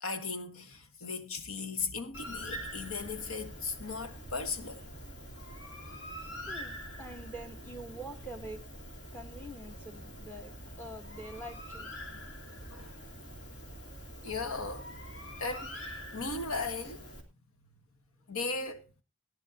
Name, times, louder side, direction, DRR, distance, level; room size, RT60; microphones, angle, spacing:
voice 1, 0.0-4.8 12.1-12.9 14.2-14.9 15.4-17.0 18.3-18.9, left 4 dB, 85° left, 1.4 m, -37 dB
Bird, 2.1-17.2, equal, 55° left, 2.7 m, -45 dB
voice 2, 6.5-8.6 9.1-11.9, right 1 dB, 10° left, 0.9 m, -45 dB
18.0 x 10.5 x 2.8 m
head